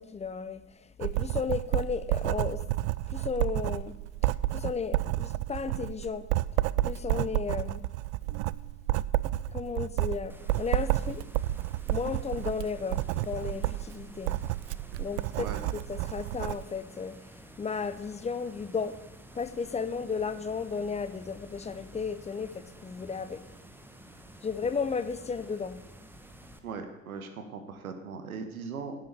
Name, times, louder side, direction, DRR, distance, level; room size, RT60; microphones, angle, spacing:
voice 1, 0.0-2.6 3.1-4.0 4.5-6.3 6.8-7.8 9.5-11.2 11.9-14.3 15.0-15.5 15.7-19.0 19.3-23.4 24.4-25.8, left 5 dB, 15° left, 0.8 m, -34 dB
Writing, 1.0-16.6, right 16 dB, 55° right, 0.5 m, -30 dB
sound 1, 10.3-26.6, right 1 dB, 5° right, 1.3 m, -51 dB
voice 2, 26.6-29.0, right 5 dB, 80° right, 1.4 m, -39 dB
11.0 x 7.5 x 7.1 m
figure-of-eight pair, 65°, 42 cm